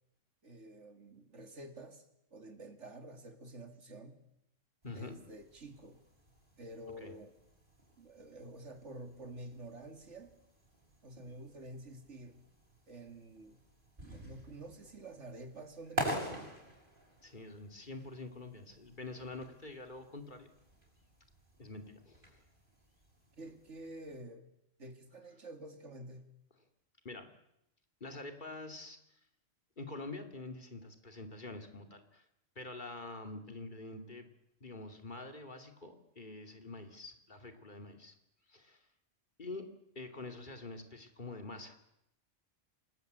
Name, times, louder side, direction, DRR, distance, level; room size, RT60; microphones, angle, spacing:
voice 1, 0.4-2.0 2.3-4.2 4.9-6.0 6.6-7.3 8.0-10.3 11.0-12.4 12.9-13.6 14.0-16.5 23.4-24.5 24.8-26.3, right 1 dB, 70° right, 6 dB, 2.9 m, -49 dB
voice 2, 4.8-5.2 7.0-7.1 17.2-20.5 21.6-22.4 27.0-27.3 28.0-29.2 29.8-32.3 32.6-34.3 34.6-38.1 38.5-38.9 39.4-39.7 39.9-41.8, left 2 dB, 40° left, 6 dB, 2.7 m, -46 dB
sound 1, 4.8-24.2, right 1 dB, 45° right, 6.4 m, -47 dB
27.5 x 19.5 x 8.2 m, 0.81 s
omnidirectional pair, 1.3 m